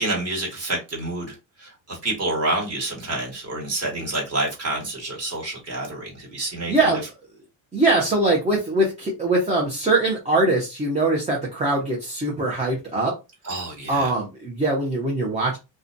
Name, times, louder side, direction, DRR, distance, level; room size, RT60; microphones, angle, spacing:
voice 1, 0.0-6.7 13.4-14.1, right 2 dB, 30° right, 1.3 m, -28 dB
voice 2, 6.7-7.0 7.7-13.1 13.9-15.6, right 2 dB, 15° right, 0.5 m, -22 dB
2.4 x 2.2 x 2.5 m
cardioid pair, 125°, 48 cm